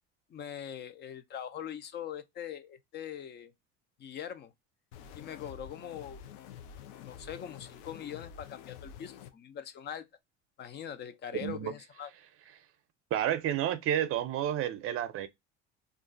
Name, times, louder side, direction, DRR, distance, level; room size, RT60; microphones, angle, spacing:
voice 1, 0.3-3.5 4.0-4.5 5.1-6.2 7.0-10.1 10.6-12.1, left 9 dB, 35° left, 0.5 m, -42 dB
sound 1, 4.9-9.3, left 8 dB, 85° left, 0.5 m, -48 dB
voice 2, 11.4-11.7 13.1-15.3, right 10 dB, 50° right, 0.6 m, -30 dB
2.4 x 2.3 x 3.7 m
supercardioid pair, 105°, 30 cm